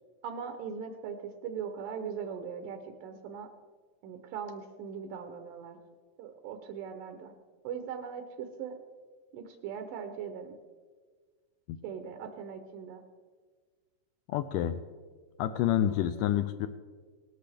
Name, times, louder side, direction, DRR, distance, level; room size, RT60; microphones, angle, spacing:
voice 1, 0.2-3.5 4.0-5.8 6.2-7.3 7.6-8.7 9.3-10.6 11.8-13.0, right 7 dB, 80° right, 6 dB, 2.4 m, -40 dB
voice 2, 14.3-14.8 15.4-16.7, left 11 dB, 80° left, 8 dB, 2.0 m, -28 dB
18.5 x 12.0 x 3.4 m, 1.5 s
omnidirectional pair, 3.9 m